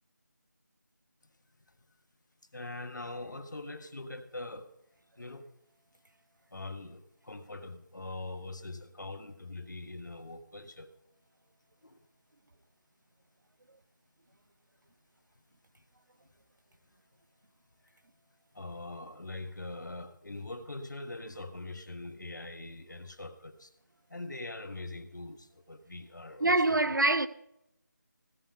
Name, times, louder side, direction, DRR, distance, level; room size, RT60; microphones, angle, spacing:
voice 1, 2.5-4.7 5.2-5.5 6.5-10.9 11.8-12.0 18.5-23.7 24.1-26.8, left 2 dB, 70° left, 1.4 m, -42 dB
voice 2, 26.4-27.3, right 2 dB, 80° right, 0.9 m, -24 dB
16.5 x 8.7 x 3.7 m
figure-of-eight pair, 175°, 10 cm